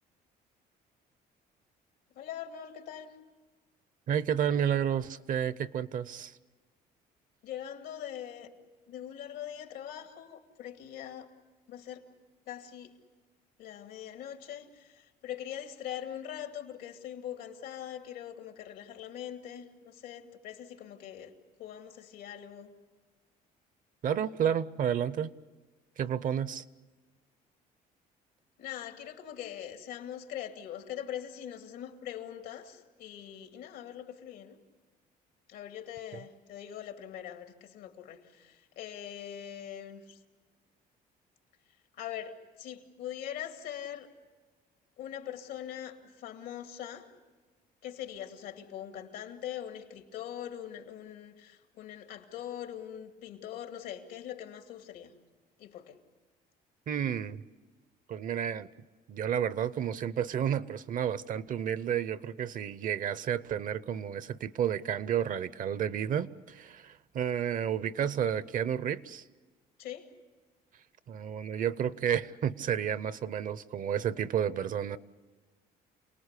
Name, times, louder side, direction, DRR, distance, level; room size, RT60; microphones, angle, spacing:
voice 1, 2.1-3.1 7.4-8.5 8.9-11.3 11.7-12.0 12.5-13.0 13.6-21.3 21.6-22.7 28.6-34.6 35.5-40.2 42.0-42.3 42.6-44.1 45.0-47.1 47.8-55.1 55.6-56.0 69.8-70.1, left 10 dB, 90° left, 2.4 m, -42 dB
voice 2, 4.1-6.4 24.0-25.3 26.0-26.6 56.9-57.4 58.1-58.7 59.1-69.2 71.1-75.0, right 9 dB, 50° right, 0.8 m, -31 dB
28.0 x 19.0 x 8.3 m
cardioid pair, 110°, 17 cm